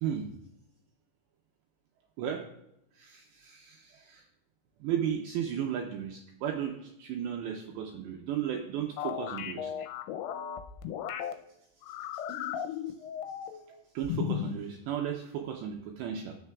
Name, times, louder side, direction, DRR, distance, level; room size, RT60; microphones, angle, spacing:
voice 1, 2.9-4.2 4.8-9.7 11.9-12.2 12.6-12.7 13.7-16.4, right 9 dB, 90° right, 2 dB, 2.4 m, -35 dB
sound 1, 9.0-11.3 11.8-13.7 14.0-14.6, left 10 dB, 80° left, 3.2 m, -35 dB
12.0 x 7.4 x 2.3 m, 0.82 s
omnidirectional pair, 5.9 m